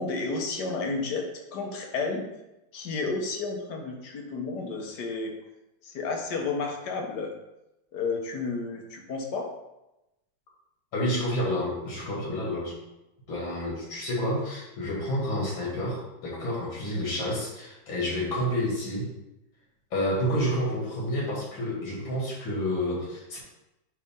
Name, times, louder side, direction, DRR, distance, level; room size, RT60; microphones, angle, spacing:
voice 1, 0.0-2.3 2.7-5.3 5.8-7.3 7.9-9.5, left 3 dB, 65° left, 2 dB, 1.5 m, -31 dB
voice 2, 10.9-12.7 13.3-19.1 19.9-23.4, equal, 80° left, -5 dB, 3.0 m, -29 dB
9.3 x 3.5 x 3.7 m, 0.93 s
omnidirectional pair, 2.1 m